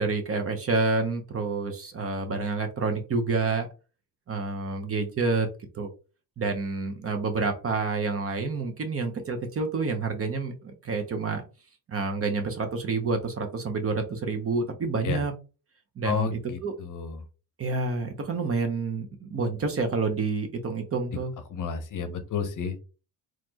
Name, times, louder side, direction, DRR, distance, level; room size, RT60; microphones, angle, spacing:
voice 1, 0.0-3.7 4.3-5.5 5.7-5.9 6.4-11.4 11.9-15.3 16.0-16.7 17.6-21.3, right 4 dB, 30° right, 5 dB, 0.7 m, -28 dB
voice 2, 16.0-17.2 21.5-22.8, left 6 dB, 45° left, 9 dB, 0.8 m, -31 dB
4.1 x 3.0 x 2.8 m, 0.33 s
cardioid pair, 130°, 46 cm